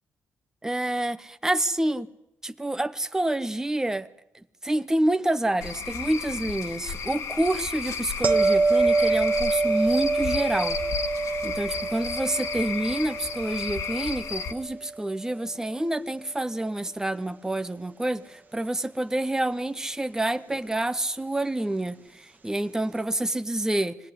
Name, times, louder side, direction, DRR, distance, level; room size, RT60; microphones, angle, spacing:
voice 1, 0.6-2.1 2.4-4.1 4.6-10.8 11.4-24.0, right 1 dB, 10° right, 1.0 m, -28 dB
Cricket / Frog, 5.6-14.5, left 6 dB, 75° left, 2.1 m, -33 dB
sound 1, 8.2-15.2 20.5-20.7, right 3 dB, 30° right, 1.5 m, -26 dB
24.5 x 18.0 x 9.9 m
cardioid pair, 95°, 5 cm